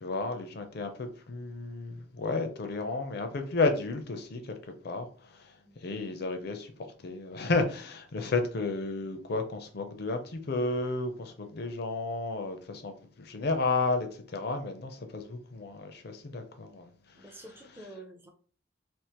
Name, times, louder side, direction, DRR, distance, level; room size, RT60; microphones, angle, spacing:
voice 1, 0.0-4.5 4.8-5.1 5.8-6.7 7.0-16.9, left 3 dB, 50° left, 0.5 m, -32 dB
voice 2, 17.1-18.3, right 2 dB, 10° right, 0.5 m, -48 dB
3.5 x 2.4 x 2.9 m
head